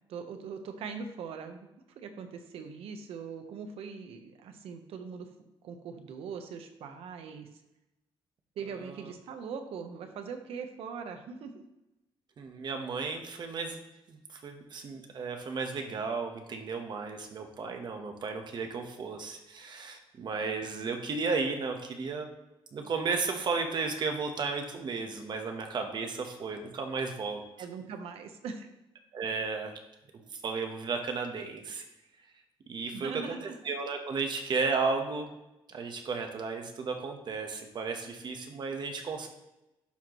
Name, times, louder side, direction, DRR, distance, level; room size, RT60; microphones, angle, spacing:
voice 1, 0.1-1.7 2.0-5.3 5.6-7.5 8.6-11.6 27.6-28.7 30.2-30.3 32.9-33.6, right 5 dB, 80° right, 7 dB, 0.9 m, -41 dB
voice 2, 8.8-9.1 12.4-13.8 14.1-22.3 22.7-27.4 29.1-29.7 30.3-31.8 32.7-33.4 33.6-35.3 35.7-39.3, right 4 dB, 50° right, 4 dB, 1.1 m, -34 dB
11.5 x 4.4 x 3.1 m, 0.93 s
cardioid pair, 120°, 10 cm